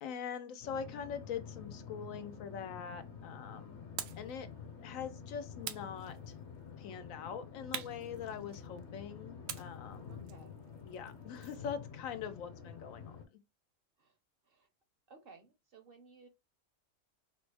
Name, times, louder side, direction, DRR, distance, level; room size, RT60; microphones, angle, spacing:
voice 1, 0.0-3.8 4.2-4.5 4.8-6.3 6.8-10.1 10.8-13.4, left 7 dB, 85° left, 1.0 m, -43 dB
sound 1, 0.6-13.3, left 6 dB, 60° left, 1.1 m, -49 dB
sound 2, 4.0-4.3 5.6-6.6 7.7-8.8 9.5-11.7, right 9 dB, 80° right, 1.0 m, -45 dB
voice 2, 10.1-10.6 12.6-12.7 14.0-14.2 14.4-14.7 15.1-16.3, right 4 dB, 55° right, 0.8 m, -58 dB
3.7 x 2.0 x 3.3 m
omnidirectional pair, 1.4 m